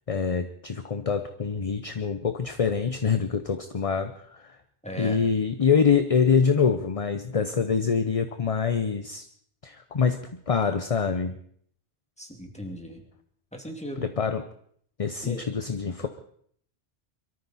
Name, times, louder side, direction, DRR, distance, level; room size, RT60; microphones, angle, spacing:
voice 1, 0.1-4.6 5.0-9.2 9.6-11.4 14.0-14.4 15.0-16.1, left 6 dB, 35° left, 9 dB, 0.8 m, -25 dB
voice 2, 4.8-5.2 12.2-13.0 13.5-14.1 15.2-15.4 16.0-16.1, equal, 5° left, 2 dB, 2.5 m, -37 dB
23.5 x 13.5 x 4.2 m, 0.62 s
omnidirectional pair, 1.2 m